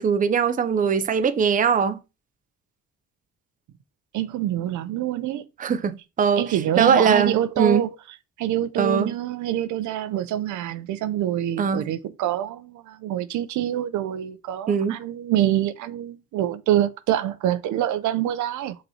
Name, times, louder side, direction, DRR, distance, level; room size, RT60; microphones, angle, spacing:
voice 1, 0.0-2.0 5.6-7.9 8.8-9.1 11.6-11.9 14.7-15.0, right 6 dB, 25° right, 0.5 m, -21 dB
voice 2, 4.1-5.4 6.4-7.9 8.4-18.8, right 12 dB, 75° right, 0.5 m, -26 dB
5.4 x 3.0 x 2.8 m
cardioid pair, 90°, 30 cm